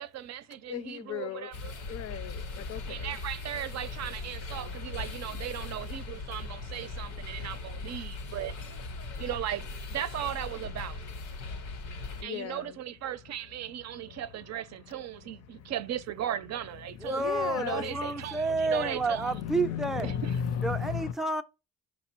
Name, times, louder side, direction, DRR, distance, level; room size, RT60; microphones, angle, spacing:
voice 1, 0.0-1.7 2.9-8.5 9.2-11.0 12.2-17.2 17.6-19.3, right 11 dB, 60° right, 0.5 m, -37 dB
voice 2, 0.7-1.5 1.9-3.2 12.2-12.8 14.1-14.2 15.5-15.7 16.9-17.9 19.3-21.1, left 8 dB, 55° left, 0.6 m, -35 dB
sound 1, 1.5-12.2, left 3 dB, 85° left, 1.0 m, -39 dB
voice 3, 17.0-20.1 20.6-21.4, right 2 dB, ahead, 0.4 m, -30 dB
5.8 x 2.0 x 4.3 m
cardioid pair, 90°, 30 cm